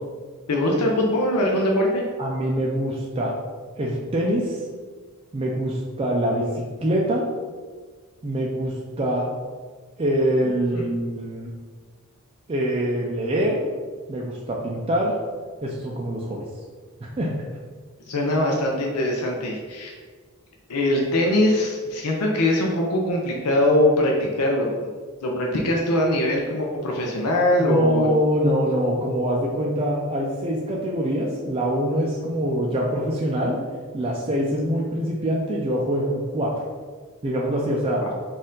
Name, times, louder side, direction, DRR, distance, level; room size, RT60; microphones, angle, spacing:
voice 1, 0.5-2.0 10.7-10.8 18.1-19.9 20.7-24.9 25.2-28.1 38.0-38.1, left 1 dB, 85° left, -1 dB, 0.6 m, -22 dB
voice 2, 2.2-3.4 3.8-4.6 5.3-7.3 8.2-9.3 10.0-11.5 12.5-13.6 14.1-15.2 15.6-16.5 17.0-17.3 27.6-33.6 33.9-36.6 37.2-38.1, equal, 25° right, -3 dB, 0.4 m, -24 dB
4.3 x 2.5 x 3.7 m, 1.5 s
head